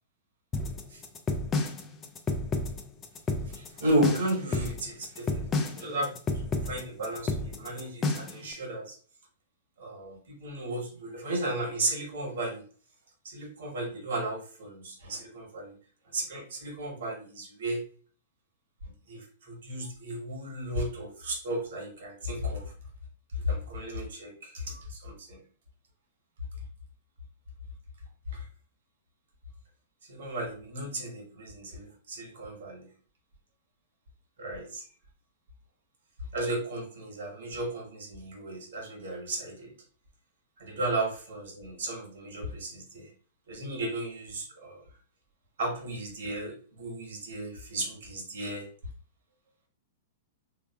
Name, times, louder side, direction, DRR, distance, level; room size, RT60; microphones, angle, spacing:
sound 1, 0.5-8.5, left 3 dB, 20° left, 0.4 m, -30 dB
voice 1, 3.6-6.1 6.6-8.9 9.8-12.6 13.2-15.7 16.1-17.8 19.1-22.7 23.4-25.4 28.3-28.4 30.1-32.9 34.4-34.8 36.3-39.7 40.6-43.1 43.5-44.8 45.6-48.7, right 1 dB, 55° right, 2 dB, 1.1 m, -34 dB
3.4 x 2.3 x 2.3 m, 0.42 s
figure-of-eight pair, 105°, 0 cm